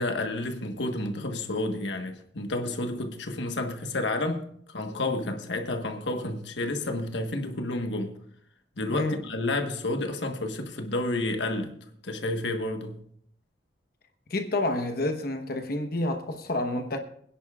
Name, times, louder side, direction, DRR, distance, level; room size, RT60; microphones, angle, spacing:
voice 1, 0.0-8.1 8.8-11.7 12.0-13.0, left 2 dB, 75° left, 1.4 m, -30 dB
voice 2, 14.3-17.0, left 2 dB, 55° left, 1.1 m, -29 dB
23.5 x 10.0 x 2.4 m
head